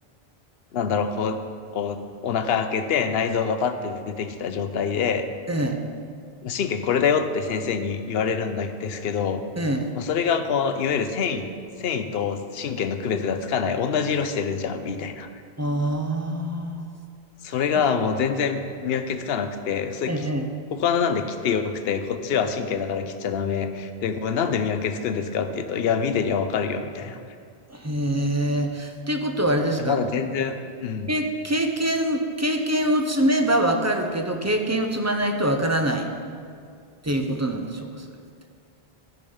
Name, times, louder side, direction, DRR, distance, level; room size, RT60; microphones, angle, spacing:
voice 1, 0.7-1.4 1.7-5.3 6.4-9.4 9.9-11.5 11.8-15.3 17.4-20.3 20.7-27.2 29.8-30.5 30.8-31.1, left 6 dB, 75° left, 9 dB, 0.9 m, -25 dB
voice 2, 5.5-5.8 9.6-9.9 15.6-17.0 20.1-20.5 27.7-30.0 31.1-36.1 37.0-38.0, right 1 dB, 20° right, 4 dB, 0.6 m, -24 dB
13.0 x 5.2 x 5.6 m, 2.2 s
omnidirectional pair, 1.1 m